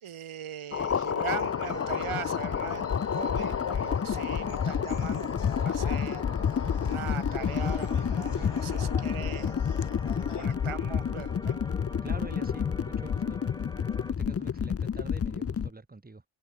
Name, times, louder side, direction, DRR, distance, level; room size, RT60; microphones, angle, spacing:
voice 1, 0.0-5.3 5.6-6.2 6.8-9.6 10.2-11.6, right 9 dB, 80° right, 1.9 m, -40 dB
sound 1, 0.7-15.7, left 7 dB, 30° left, 0.5 m, -29 dB
sound 2, 1.3-14.1, left 1 dB, 10° left, 2.6 m, -45 dB
sound 3, 1.4-10.5, left 8 dB, 55° left, 1.4 m, -41 dB
voice 2, 12.0-13.4 14.1-16.2, right 3 dB, 20° right, 1.7 m, -45 dB
cardioid pair, 70°, 49 cm